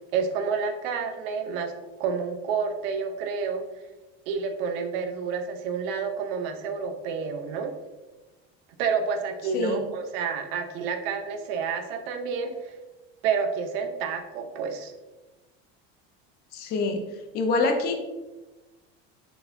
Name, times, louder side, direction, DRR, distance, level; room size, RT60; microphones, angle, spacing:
voice 1, 0.1-1.7 2.0-3.6 4.3-7.7 8.8-12.7 13.2-14.9, right 6 dB, 75° right, 6 dB, 0.7 m, -29 dB
voice 2, 16.5-17.0 17.3-17.9, left 3 dB, 35° left, 5 dB, 0.4 m, -25 dB
4.5 x 4.1 x 2.6 m, 1.1 s
cardioid pair, 170°, 30 cm